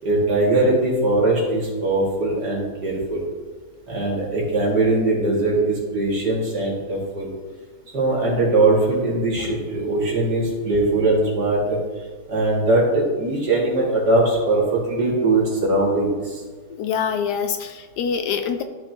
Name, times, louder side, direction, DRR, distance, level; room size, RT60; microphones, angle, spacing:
voice 1, 0.0-3.2 3.9-7.3 7.9-11.8 12.3-16.4, right 2 dB, 65° right, -4 dB, 2.8 m, -21 dB
voice 2, 16.7-18.6, left 7 dB, 75° left, 8 dB, 1.1 m, -25 dB
13.0 x 6.2 x 2.9 m, 1.5 s
omnidirectional pair, 2.0 m